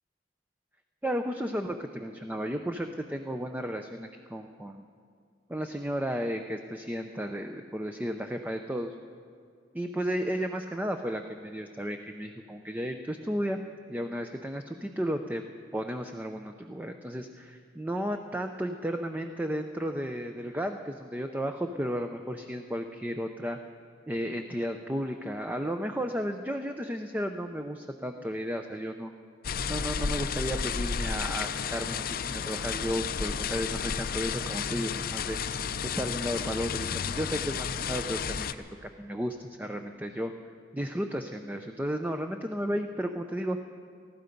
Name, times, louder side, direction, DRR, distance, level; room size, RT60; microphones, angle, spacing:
voice 1, 1.0-4.9 5.5-8.9 9.7-13.6 13.9-15.4 15.7-23.6 24.1-29.1 29.7-35.4 35.8-40.3 40.7-43.6, equal, 10° right, 5 dB, 0.5 m, -33 dB
sound 1, 29.4-38.5, left 6 dB, 50° left, 0.5 m, -32 dB
19.0 x 14.5 x 5.2 m, 2.2 s
head